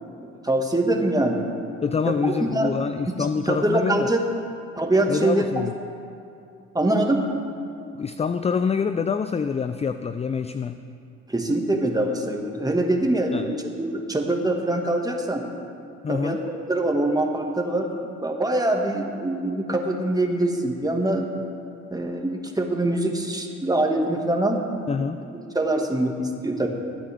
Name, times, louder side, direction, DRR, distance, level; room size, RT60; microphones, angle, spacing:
voice 1, 0.4-1.5 2.1-2.7 3.1-3.2 3.5-4.2 4.8-5.6 6.7-7.3 11.3-15.4 16.1-21.3 21.9-24.6 25.0-25.1 25.5-26.7, right 1 dB, 10° right, 2 dB, 2.0 m, -24 dB
voice 2, 1.8-4.1 5.1-5.7 8.0-10.8 13.3-13.5 16.0-16.4 24.9-25.2, left 5 dB, 20° left, 10 dB, 0.4 m, -26 dB
22.0 x 8.9 x 3.6 m, 2.5 s
hypercardioid pair, 55°, 33 cm